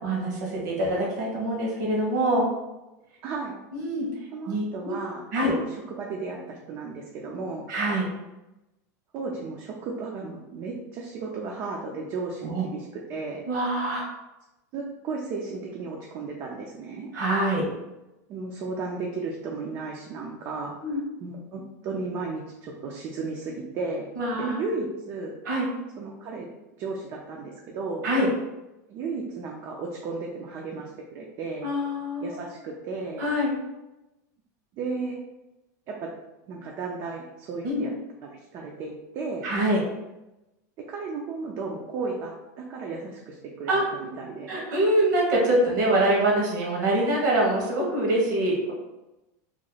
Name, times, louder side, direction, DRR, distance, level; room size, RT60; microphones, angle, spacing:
voice 1, 0.0-2.5 3.7-4.1 4.5-4.9 5.3-5.5 7.7-8.1 12.4-12.6 13.5-14.0 17.1-17.6 20.8-21.0 24.1-24.6 25.4-25.7 28.0-28.3 31.6-32.4 33.2-33.5 37.6-37.8 39.4-39.8 43.7-43.8 44.5-48.7, right 1 dB, 75° right, -3 dB, 1.3 m, -24 dB
voice 2, 3.2-3.6 4.3-7.6 9.1-13.4 14.7-17.1 18.3-20.7 21.2-24.1 24.4-25.4 26.0-26.5 26.8-28.0 28.9-31.7 32.2-33.2 34.7-35.2 35.9-36.1 36.5-37.9 38.2-39.5 40.9-43.7 44.0-44.6, right 4 dB, 35° right, -1 dB, 0.4 m, -34 dB
3.0 x 2.1 x 3.9 m, 0.99 s
supercardioid pair, 150°, 10 cm